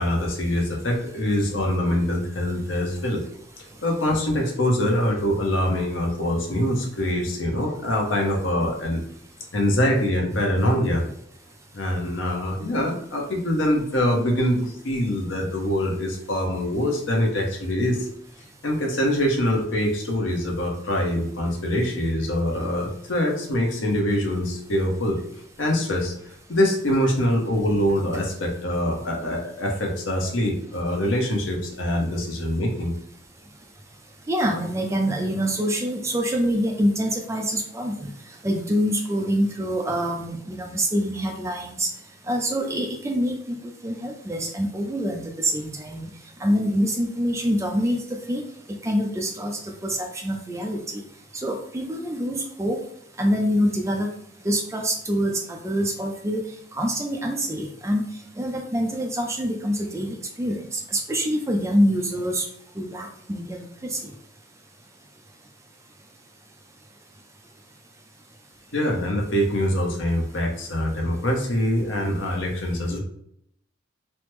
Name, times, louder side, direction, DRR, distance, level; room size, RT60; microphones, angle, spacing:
voice 1, 0.0-3.2 3.6-9.0 9.5-11.0 11.7-18.1 18.6-25.2 25.6-26.1 26.5-32.9 68.7-73.0, left 1 dB, 75° left, 1 dB, 0.8 m, -24 dB
voice 2, 34.3-38.1 38.4-41.9 42.3-43.6 43.8-46.1 46.4-48.0 48.3-48.4 48.8-51.0 51.4-52.8 53.2-54.1 54.4-56.4 56.7-58.0 58.4-62.5 62.8-64.0, equal, 15° right, 2 dB, 0.4 m, -25 dB
3.2 x 2.0 x 3.1 m, 0.73 s
head